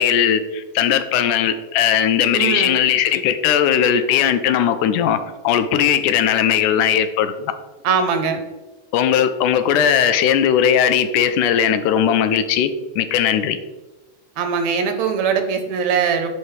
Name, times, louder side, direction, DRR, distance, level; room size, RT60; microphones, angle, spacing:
voice 1, 0.0-5.2 5.4-7.6 8.9-13.6, left 9 dB, 85° left, 10 dB, 2.2 m, -18 dB
voice 2, 2.3-2.8 7.8-8.4 14.4-16.3, right 6 dB, 75° right, 6 dB, 2.0 m, -21 dB
11.5 x 5.6 x 3.3 m, 1.1 s
omnidirectional pair, 3.6 m